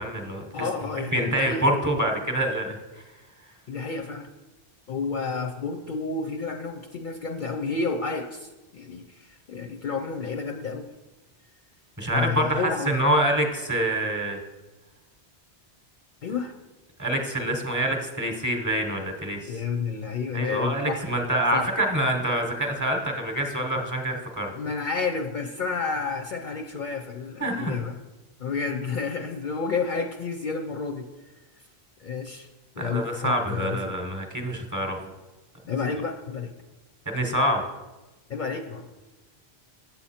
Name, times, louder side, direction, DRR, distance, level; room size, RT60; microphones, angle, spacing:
voice 1, 0.0-0.4 1.1-2.8 12.0-14.4 17.0-19.5 20.3-24.5 27.4-27.8 32.8-35.0 37.1-37.6, right 1 dB, 20° right, 2 dB, 0.9 m, -26 dB
voice 2, 0.5-1.6 3.7-4.3 4.9-10.9 12.1-12.9 16.2-16.5 19.4-21.1 21.5-21.8 24.5-28.0 28.4-31.0 32.0-32.5 32.8-33.9 35.7-36.5 38.3-39.0, left 4 dB, 55° left, 4 dB, 0.6 m, -30 dB
8.2 x 7.1 x 4.2 m, 1.1 s
omnidirectional pair, 1.1 m